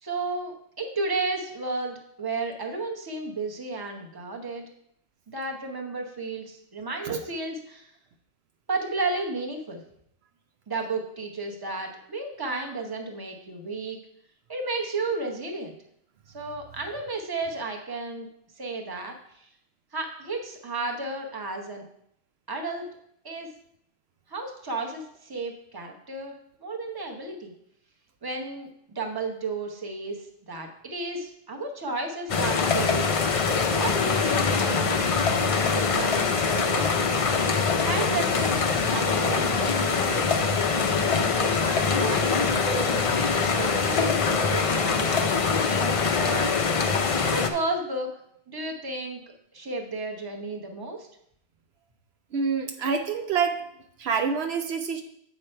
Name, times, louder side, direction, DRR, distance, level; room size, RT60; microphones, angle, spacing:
voice 1, 0.0-4.7 5.3-7.9 8.7-9.8 10.7-14.0 14.5-15.7 16.3-18.3 18.6-19.5 19.9-21.8 22.5-22.9 23.2-23.5 24.3-26.3 26.6-27.5 28.2-33.1 33.7-35.1 35.6-37.1 37.8-40.2 41.0-42.6 43.1-46.8 47.3-48.1 48.5-49.2 49.5-51.1, right 3 dB, 20° right, 2 dB, 0.9 m, -33 dB
sound 1, 32.3-47.5, left 5 dB, 40° left, 0.5 m, -23 dB
voice 2, 52.3-53.6 54.0-55.0, right 6 dB, 70° right, 6 dB, 0.8 m, -26 dB
7.7 x 5.0 x 4.4 m, 0.72 s
omnidirectional pair, 1.1 m